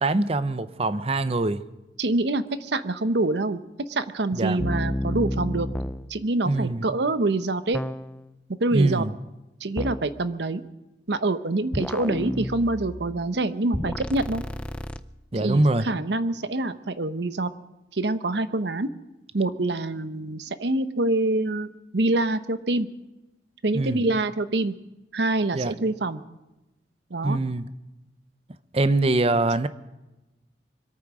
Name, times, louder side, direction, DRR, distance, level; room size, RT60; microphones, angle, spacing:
voice 1, 0.0-1.6 4.3-4.6 6.5-6.9 8.7-9.2 15.3-15.9 23.7-24.0 25.5-25.7 27.2-27.7 28.7-29.7, right 2 dB, 35° right, 13 dB, 0.7 m, -23 dB
voice 2, 2.0-3.6 3.9-5.7 6.1-7.8 8.6-9.0 9.6-10.6 11.1-14.4 15.3-17.5 17.9-18.9 19.3-22.9 23.6-24.7 25.1-26.2 27.1-27.4, right 2 dB, 70° right, 12 dB, 0.8 m, -25 dB
sound 1, 4.6-6.1 7.7-8.3 9.8-10.1 11.7-13.2 13.7-15.0, equal, 5° left, 0.4 m, -30 dB
24.5 x 9.0 x 6.2 m, 1.0 s
head